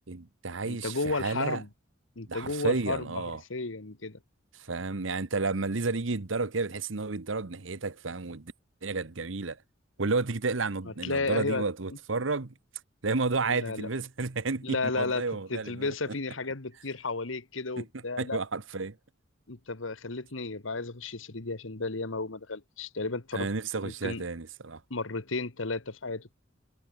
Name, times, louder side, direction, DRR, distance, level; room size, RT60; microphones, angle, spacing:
voice 1, 0.1-1.6 2.3-3.4 4.5-8.5 8.8-9.6 10.0-12.5 13.0-15.9 17.8-17.9 18.2-19.0 23.3-24.8, right 3 dB, 80° right, 1.1 m, -31 dB
voice 2, 0.6-1.7 2.1-3.0 3.5-4.2 11.0-11.6 13.5-13.9 14.6-15.2 15.5-18.4 19.5-23.5 23.8-24.2 24.9-26.3, left 3 dB, 90° left, 1.6 m, -33 dB
head